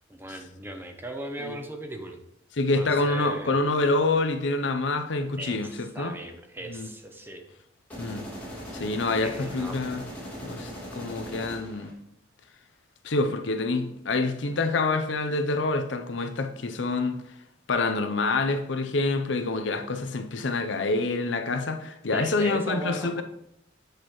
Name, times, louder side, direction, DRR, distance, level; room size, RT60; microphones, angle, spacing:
voice 1, 0.1-2.2 2.8-3.6 5.4-7.4 9.2-9.9 22.1-23.2, right 1 dB, 10° right, 0.7 m, -38 dB
voice 2, 2.6-6.1 6.7-6.9 8.0-8.3 8.7-10.0 10.4-11.9 13.0-17.2 17.7-23.2, left 3 dB, 65° left, 0.7 m, -27 dB
sound 1, 7.9-11.9, equal, 10° left, 2.3 m, -39 dB
8.1 x 6.5 x 3.1 m
head